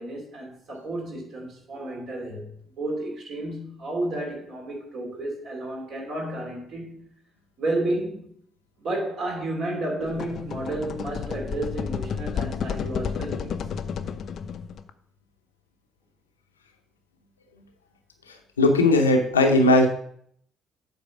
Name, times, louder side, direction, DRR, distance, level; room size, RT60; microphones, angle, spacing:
voice 1, 0.0-7.1 7.6-8.3 8.8-13.7, right 1 dB, 50° right, 2.7 m, -32 dB
sound 1, 10.0-14.9, left 7 dB, 50° left, 0.5 m, -31 dB
voice 2, 18.6-19.9, left 2 dB, 80° left, 0.7 m, -18 dB
8.1 x 4.4 x 6.0 m
figure-of-eight pair, 50°, 0 cm